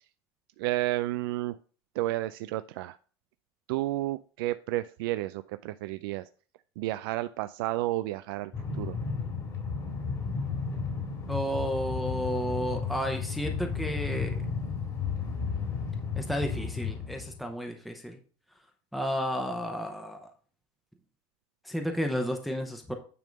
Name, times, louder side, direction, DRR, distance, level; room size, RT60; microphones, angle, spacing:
voice 1, 0.6-1.6 2.0-3.0 3.7-6.3 6.8-9.0, right 16 dB, 85° right, 12 dB, 0.4 m, -31 dB
Train, 8.5-17.4, left 5 dB, 30° left, 1.7 m, -33 dB
voice 2, 11.3-14.4 16.2-18.2 18.9-20.3 21.6-22.9, equal, ahead, 4 dB, 0.7 m, -32 dB
9.4 x 3.6 x 5.2 m, 0.40 s
cardioid pair, 175°, 12 cm